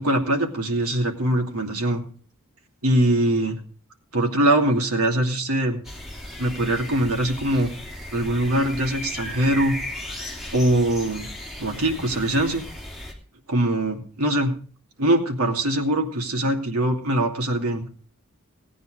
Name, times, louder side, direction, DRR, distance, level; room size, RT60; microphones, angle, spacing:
voice 1, 0.0-2.0 2.8-3.6 4.1-5.8 6.4-7.7 8.1-9.8 10.5-11.3 11.6-12.6 13.5-14.6 15.0-17.9, right 1 dB, 90° right, 3 dB, 2.7 m, -22 dB
sound 1, 5.8-13.1, left 1 dB, ahead, 2.7 m, -36 dB
17.5 x 9.4 x 4.9 m, 0.43 s
head